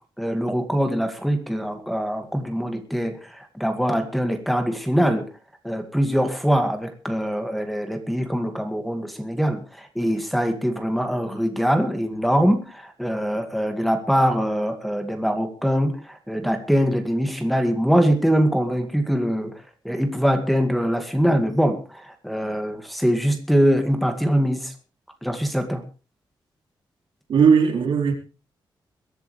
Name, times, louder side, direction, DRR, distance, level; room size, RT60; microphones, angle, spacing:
voice 1, 0.2-5.3 5.6-19.5 19.8-24.7 25.2-25.8, equal, ahead, 2.2 m, -23 dB
voice 2, 27.3-28.1, right 6 dB, 85° right, 4.2 m, -17 dB
22.0 x 13.0 x 3.4 m
wide cardioid pair, 160°, 8 cm